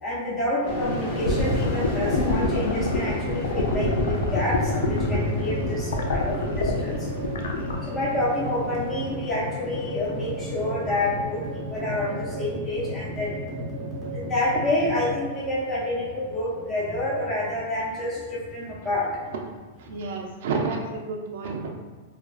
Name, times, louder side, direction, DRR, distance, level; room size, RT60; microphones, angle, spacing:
voice 1, 0.0-13.4 14.1-19.2 19.9-20.0, left 1 dB, 20° left, -4 dB, 0.4 m, -28 dB
sound 1, 0.7-14.1, equal, 55° left, 0.7 m, -37 dB
sound 2, 0.8-15.1, right 1 dB, 5° left, 0.9 m, -34 dB
sound 3, 1.2-7.7, left 3 dB, 90° left, 0.3 m, -26 dB
voice 2, 19.8-21.7, right 4 dB, 65° right, 0 dB, 0.3 m, -30 dB
2.4 x 2.2 x 2.3 m, 1.4 s
supercardioid pair, 150°, 0 cm